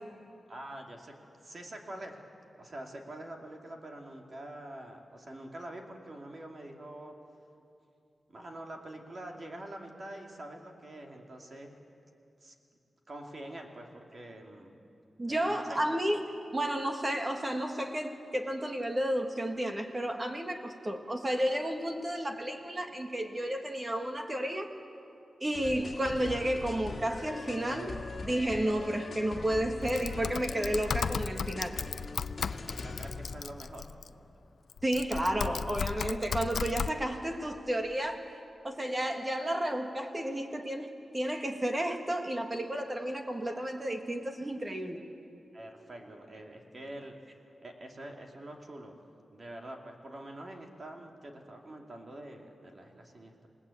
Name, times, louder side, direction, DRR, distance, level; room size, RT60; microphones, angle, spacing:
voice 1, 0.5-1.2 1.4-2.2 2.6-7.2 8.3-11.8 12.4-12.5 13.1-14.8 15.3-15.8 32.8-33.9 45.5-47.3 47.6-49.0 49.3-53.5, right 1 dB, 35° right, 2 dB, 2.5 m, -45 dB
voice 2, 15.2-16.2 16.5-24.7 25.4-31.8 34.8-38.2 38.6-45.0, right 1 dB, 20° right, 5 dB, 1.8 m, -32 dB
sound 1, 25.5-33.4, left 3 dB, 45° left, 2.4 m, -41 dB
Typing, 29.9-34.1 34.7-36.9, left 6 dB, 70° left, 0.5 m, -35 dB
28.0 x 18.5 x 8.5 m, 2.7 s
wide cardioid pair, 155°, 0 cm